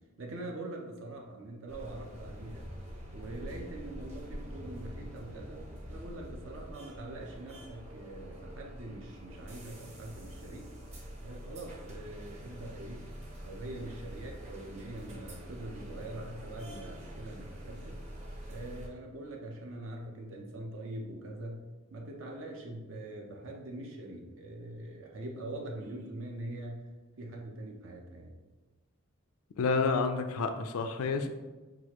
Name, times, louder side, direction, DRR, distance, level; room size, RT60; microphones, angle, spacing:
voice 1, 0.2-2.7 3.1-5.6 5.9-10.7 11.2-13.0 13.4-18.0 18.5-21.6 21.9-26.8 27.2-28.3, right 1 dB, 65° right, 0 dB, 0.6 m, -43 dB
sound 1, 1.7-18.9, equal, 30° right, 0.8 m, -45 dB
voice 2, 29.6-31.3, left 4 dB, 85° left, 8 dB, 0.4 m, -29 dB
6.1 x 2.4 x 2.9 m, 1.2 s
head